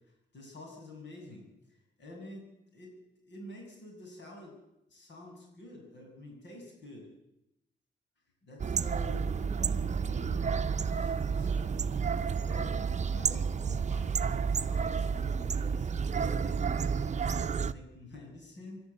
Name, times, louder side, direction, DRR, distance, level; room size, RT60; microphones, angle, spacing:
voice 1, 0.3-1.4 2.0-2.4 2.7-3.0 3.2-4.6 4.9-7.1 8.4-11.9 12.5-18.8, left 2 dB, 75° left, 1 dB, 7.1 m, -48 dB
sound 1, 8.6-17.7, right 6 dB, 40° right, 0.7 m, -30 dB
25.5 x 12.5 x 8.5 m, 0.87 s
wide cardioid pair, 120°, 19 cm